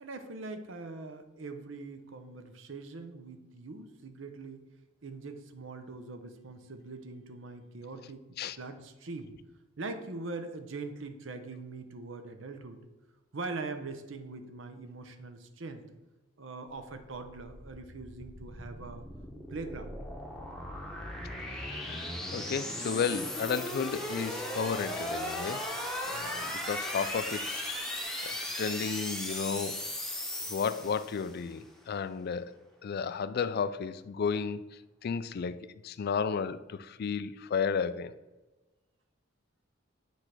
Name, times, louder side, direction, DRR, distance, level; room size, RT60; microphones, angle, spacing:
voice 1, 0.0-4.6 5.0-8.2 8.6-9.3 9.8-12.8 13.3-15.8 16.4-19.0 19.5-20.0, right 3 dB, 65° right, 8 dB, 0.7 m, -42 dB
sound 1, 17.2-31.4, left 1 dB, ahead, 0.9 m, -37 dB
voice 2, 21.5-25.6 26.0-27.7 28.2-29.8 30.5-32.5 32.8-34.6 35.0-38.1, left 6 dB, 50° left, 14 dB, 0.3 m, -33 dB
8.0 x 3.3 x 6.0 m, 1.1 s
head